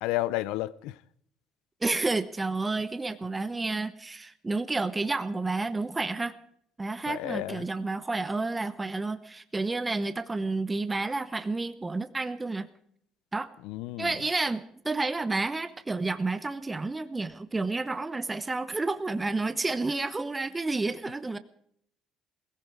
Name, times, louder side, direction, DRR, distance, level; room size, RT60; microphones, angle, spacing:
voice 1, 0.0-1.0 7.1-7.7 13.6-14.2, left 17 dB, 85° left, 0.6 m, -32 dB
voice 2, 1.8-6.4 6.8-12.7 13.3-13.5 14.0-21.4, right 3 dB, 20° right, 0.9 m, -30 dB
17.0 x 15.5 x 4.7 m
supercardioid pair, 90°, 0 cm